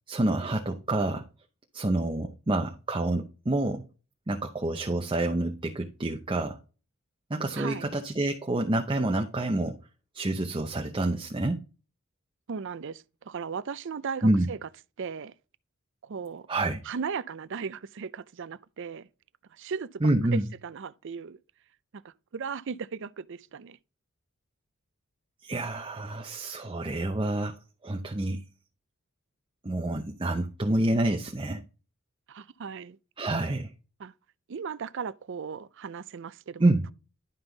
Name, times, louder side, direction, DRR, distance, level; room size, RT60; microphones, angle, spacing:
voice 1, 0.1-1.3 1.7-3.8 4.3-6.6 7.3-9.8 10.1-11.6 14.2-14.5 16.5-16.8 20.0-20.4 25.4-27.6 27.8-28.4 29.6-31.6 33.2-33.7 36.6-36.9, right 2 dB, 25° right, 0.7 m, -27 dB
voice 2, 7.6-7.9 12.5-14.7 15.0-15.3 16.0-16.5 16.8-19.1 19.5-21.4 21.9-23.8 32.3-33.0 34.0-34.1 34.5-36.9, right 6 dB, 60° right, 0.5 m, -37 dB
11.5 x 5.4 x 3.9 m
head